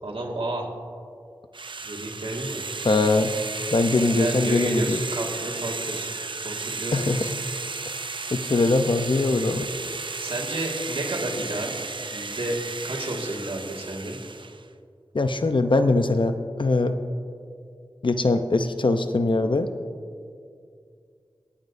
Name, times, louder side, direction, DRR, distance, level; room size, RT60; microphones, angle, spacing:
voice 1, 0.0-0.7 1.8-2.6 4.2-6.1 6.4-7.3 10.2-11.8 12.1-12.6 12.8-14.2, right 1 dB, 80° right, -2 dB, 2.0 m, -31 dB
sound 1, 1.5-14.6, right 4 dB, 60° right, 0.6 m, -34 dB
voice 2, 2.8-3.3 3.7-5.0 6.9-7.2 8.3-9.7 15.1-16.9 18.0-19.7, left 3 dB, 60° left, 8 dB, 0.7 m, -22 dB
25.5 x 8.6 x 2.7 m, 2.3 s
wide cardioid pair, 50°, 9 cm